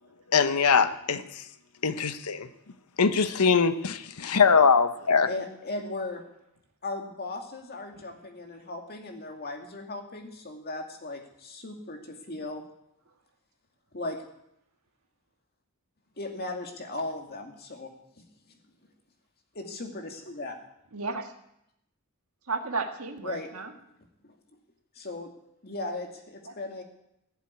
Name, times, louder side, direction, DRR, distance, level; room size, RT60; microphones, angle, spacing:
voice 1, 0.3-1.4 1.8-2.5 3.0-5.3, left 5 dB, 90° left, 11 dB, 0.9 m, -22 dB
voice 2, 3.1-3.5 5.2-6.2 6.8-12.6 13.9-14.2 16.2-18.5 19.5-20.6 23.2-23.5 24.2-24.3 25.0-25.3 25.6-26.8, left 2 dB, 45° left, 3 dB, 2.3 m, -37 dB
voice 3, 20.9-21.3 22.5-23.7 26.4-26.6, right 4 dB, 70° right, 5 dB, 1.7 m, -33 dB
16.0 x 7.3 x 9.8 m, 0.80 s
head